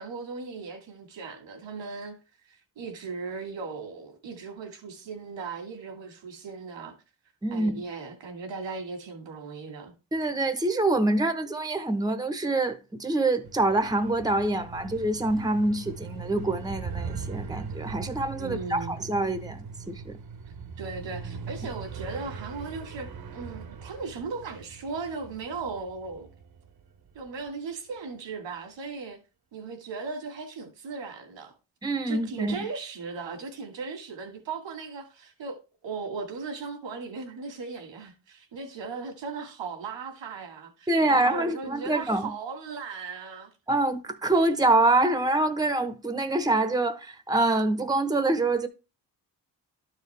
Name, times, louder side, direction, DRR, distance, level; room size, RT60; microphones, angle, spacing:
voice 1, 0.0-2.2 2.5-6.9 7.5-9.9 18.4-19.0 20.8-26.3 27.1-29.2 29.5-31.6 32.1-35.6 35.8-43.5, right 4 dB, 90° right, 2.3 m, -37 dB
voice 2, 7.4-7.8 10.1-20.2 31.8-32.6 40.9-42.3 43.7-48.7, right 2 dB, 10° right, 0.9 m, -25 dB
sound 1, 13.4-27.5, right 5 dB, 55° right, 1.1 m, -40 dB
12.0 x 4.8 x 3.3 m
cardioid pair, 80°, 43 cm